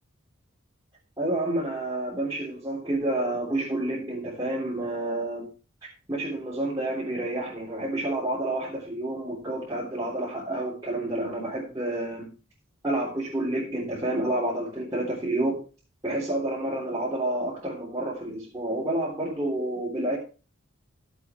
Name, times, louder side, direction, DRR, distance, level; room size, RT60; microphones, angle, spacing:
voice 1, 1.2-5.5 6.1-12.3 12.8-15.6 16.0-20.2, right 1 dB, 15° right, -7 dB, 3.6 m, -29 dB
16.5 x 7.9 x 3.2 m, 0.34 s
head